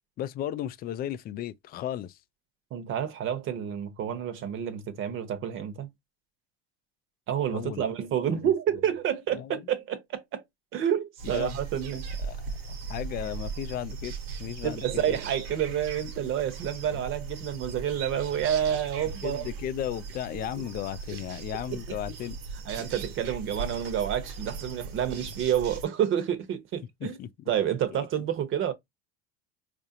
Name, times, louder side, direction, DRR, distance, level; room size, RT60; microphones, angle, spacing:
voice 1, 0.2-2.1 7.5-7.9 8.4-8.5 9.4-9.6 11.3-11.5 12.2-12.4 12.9-14.1 14.4-15.1 19.2-22.4 22.8-22.9 27.0-27.3 27.9-28.0, left 11 dB, 30° left, 0.4 m, -35 dB
voice 2, 2.7-5.9 7.3-10.4 10.7-12.1 14.6-19.5 20.4-20.6 21.7-21.8 22.6-27.2 27.5-28.7, right 9 dB, 40° right, 0.9 m, -29 dB
sound 1, 11.2-25.8, right 5 dB, 80° right, 1.2 m, -38 dB
4.7 x 2.6 x 2.7 m
supercardioid pair, 110°, 31 cm